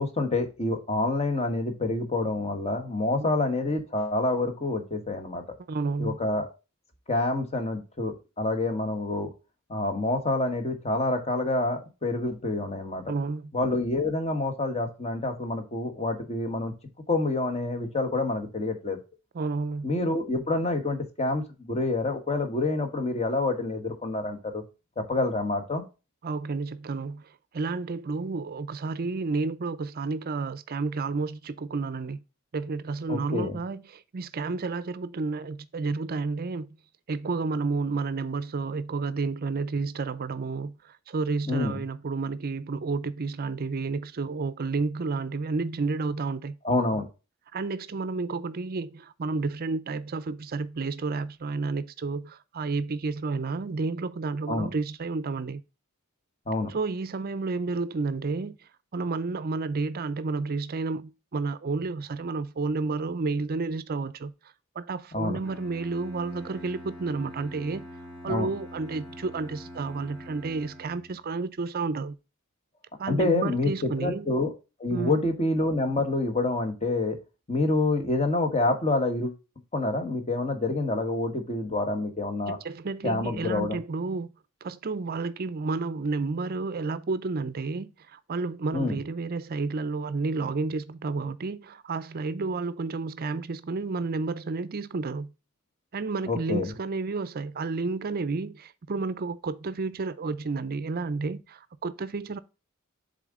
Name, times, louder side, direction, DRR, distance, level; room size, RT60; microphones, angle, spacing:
voice 1, 0.0-5.4 6.0-6.5 7.1-9.3 9.7-13.0 13.5-16.7 17.1-19.0 19.8-24.6 25.0-25.8 33.1-33.6 41.5-41.8 46.6-47.1 54.5-54.7 56.5-56.7 65.1-65.4 68.3-68.5 73.1-74.5 74.8-77.2 77.5-79.3 79.7-82.6 83.0-83.8 88.7-89.0 96.3-96.7, left 2 dB, 30° left, 1.2 m, -27 dB
voice 2, 5.7-6.2 13.1-13.5 19.3-19.9 26.2-32.2 32.5-36.7 37.1-46.6 47.5-55.6 56.7-58.6 58.9-64.3 64.8-67.9 68.2-72.2 73.0-74.3 74.9-75.2 82.5-84.3 84.6-95.3 95.9-102.4, right 3 dB, 45° right, 0.5 m, -31 dB
Bowed string instrument, 65.4-71.3, equal, ahead, 2.9 m, -44 dB
7.5 x 3.8 x 3.6 m
head